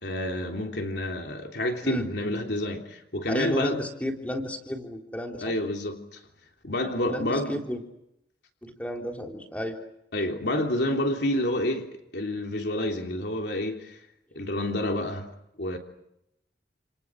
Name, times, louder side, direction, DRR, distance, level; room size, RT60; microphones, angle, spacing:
voice 1, 0.0-3.8 5.4-6.2 6.6-7.6 10.1-11.9 12.1-14.0 14.4-15.3 15.6-15.8, left 1 dB, 70° left, 3.5 m, -29 dB
voice 2, 3.3-5.4 7.1-7.8 8.6-9.8, left 1 dB, 10° left, 3.6 m, -32 dB
30.0 x 28.5 x 6.4 m
head